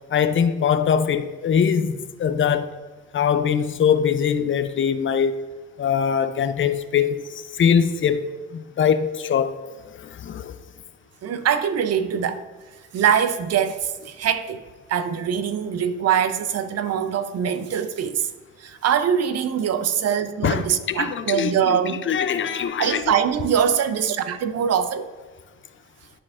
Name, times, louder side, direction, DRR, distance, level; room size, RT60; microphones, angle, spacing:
voice 1, 0.1-2.7 3.1-5.3 5.8-9.6 9.8-10.5 20.4-23.0, left 7 dB, 40° left, 0.4 m, -22 dB
voice 2, 11.2-12.4 12.9-14.6 14.9-18.3 18.6-22.0 22.8-25.1, right 8 dB, 55° right, 0.6 m, -23 dB
12.0 x 4.2 x 2.4 m
cardioid pair, 90°, 30 cm